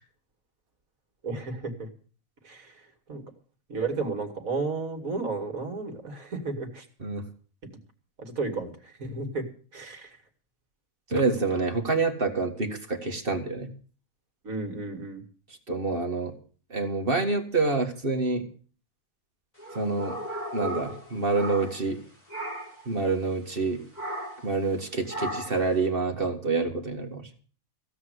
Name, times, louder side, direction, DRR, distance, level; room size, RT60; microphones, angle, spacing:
voice 1, 1.2-1.9 2.4-3.2 3.7-6.9 7.6-7.8 8.2-9.5 9.7-10.2 14.4-15.2, right 3 dB, 65° right, 5 dB, 2.8 m, -33 dB
voice 2, 11.1-13.7 15.7-16.3 16.7-18.4 19.7-20.2 20.5-22.0 22.9-23.8 24.4-27.3, right 3 dB, 40° right, 4 dB, 1.9 m, -27 dB
sound 1, 19.6-22.0 22.3-22.8 23.9-24.5 25.1-25.7, right 1 dB, 30° left, 5.0 m, -35 dB
16.0 x 7.6 x 8.0 m, 0.42 s
omnidirectional pair, 1.5 m